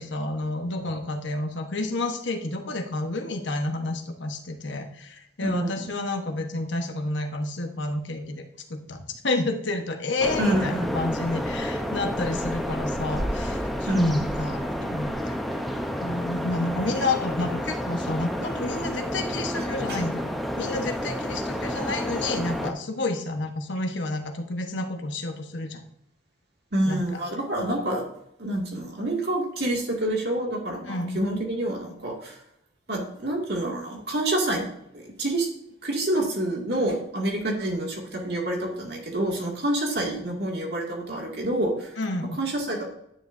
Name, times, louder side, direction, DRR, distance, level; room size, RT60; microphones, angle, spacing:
voice 1, 0.0-8.4 8.7-13.7 13.9-15.4 16.0-20.3 20.6-25.8 26.9-27.2 30.8-31.2 42.0-42.4, left 2 dB, 70° left, 4 dB, 1.1 m, -30 dB
voice 2, 5.4-5.9 10.4-10.9 13.9-14.3 16.7-16.8 19.9-20.0 26.7-28.0 28.4-32.4 32.9-34.7 34.9-35.5 35.8-41.9 42.4-42.8, right 1 dB, 55° right, 0 dB, 2.2 m, -27 dB
sound 1, 10.2-22.7, equal, ahead, 0.7 m, -30 dB
10.5 x 10.0 x 2.6 m, 0.79 s
head